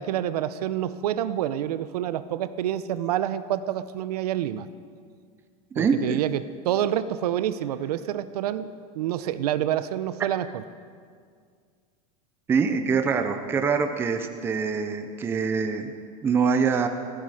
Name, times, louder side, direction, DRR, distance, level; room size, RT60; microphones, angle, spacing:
voice 1, 0.0-4.7 5.7-10.6, right 11 dB, 75° right, 13 dB, 0.8 m, -28 dB
voice 2, 5.7-6.2 12.5-15.9 16.2-16.9, right 5 dB, 10° right, 7 dB, 0.6 m, -24 dB
17.0 x 15.5 x 4.9 m, 2.1 s
supercardioid pair, 175°, 20 cm